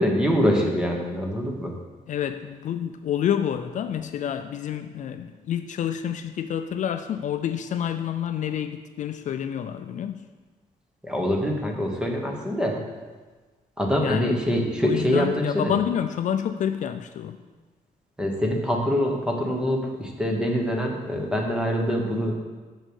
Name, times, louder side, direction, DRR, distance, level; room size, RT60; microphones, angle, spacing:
voice 1, 0.0-1.8 11.0-12.8 13.8-15.8 18.2-22.3, equal, 5° right, 0 dB, 1.2 m, -24 dB
voice 2, 2.1-10.3 14.0-14.4 14.8-17.4, left 9 dB, 55° left, 9 dB, 0.4 m, -28 dB
6.4 x 6.4 x 6.3 m, 1.3 s
wide cardioid pair, 155°, 15 cm